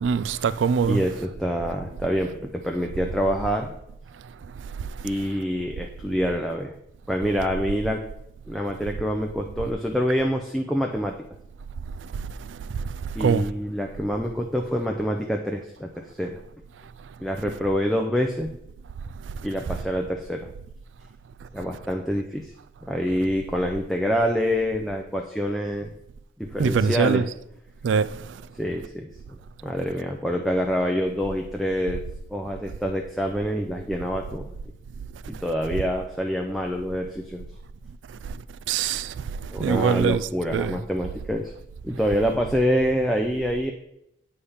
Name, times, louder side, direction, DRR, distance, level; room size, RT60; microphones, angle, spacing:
voice 1, 0.0-1.0 13.2-13.4 26.6-27.2 27.8-28.1 38.7-39.1 39.6-40.2 40.5-40.7, right 6 dB, 85° right, 0.3 m, -22 dB
voice 2, 0.9-3.7 5.0-6.7 7.1-8.0 8.5-11.1 13.1-16.4 17.2-18.5 19.4-20.5 21.5-22.5 22.8-25.9 26.4-27.3 28.6-29.1 29.6-32.0 32.3-34.6 35.3-37.5 39.5-41.5 41.8-43.7, equal, ahead, 0.4 m, -26 dB
8.4 x 3.4 x 5.5 m
head